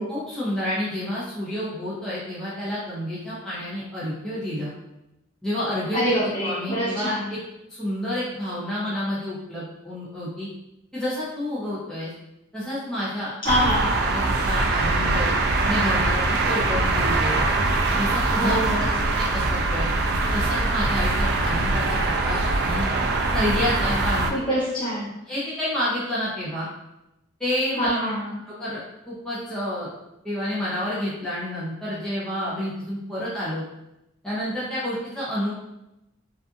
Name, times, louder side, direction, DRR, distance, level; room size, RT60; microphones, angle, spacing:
voice 1, 0.1-4.7 5.4-7.1 7.7-10.5 10.9-12.1 12.5-13.3 14.0-15.3 15.6-17.4 18.0-19.9 20.3-22.9 23.3-24.3 25.3-26.7 27.4-28.1 28.4-28.8 29.1-29.9 30.2-33.6 34.2-35.5, left 1 dB, 5° left, -11 dB, 0.7 m, -29 dB
voice 2, 5.9-7.3 13.4-13.9 18.4-19.1 24.3-25.1 27.8-28.3, equal, 25° left, -8 dB, 1.0 m, -25 dB
sound 1, 13.5-24.3, right 2 dB, 55° right, 0.3 m, -23 dB
2.5 x 2.4 x 2.4 m, 0.89 s
head